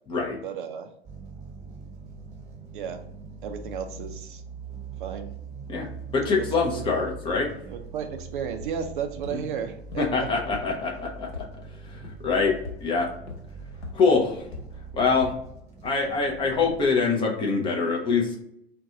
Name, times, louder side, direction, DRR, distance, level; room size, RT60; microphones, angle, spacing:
voice 1, 0.4-0.9 2.7-3.0 3.4-4.4 5.0-5.3 6.3-6.8 7.7-10.3 14.1-14.2, right 7 dB, 50° right, 6 dB, 0.4 m, -34 dB
sound 1, 1.0-16.9, right 4 dB, 20° right, 0.9 m, -42 dB
voice 2, 6.1-7.5 10.0-11.4 11.8-12.5 12.8-13.1 13.9-14.3 14.9-15.3 15.8-18.4, left 4 dB, 15° left, -1 dB, 0.5 m, -24 dB
sound 2, 8.6-8.7 9.2-9.3 9.9-10.0 10.5-10.6 11.0-11.4 12.0-12.1 12.6-12.7 13.3-13.4 13.8-13.9 14.5-14.6 15.2-15.3 15.8-15.9, left 4 dB, 70° left, 0.7 m, -37 dB
2.5 x 2.2 x 3.8 m, 0.74 s
figure-of-eight pair, 90°, 32 cm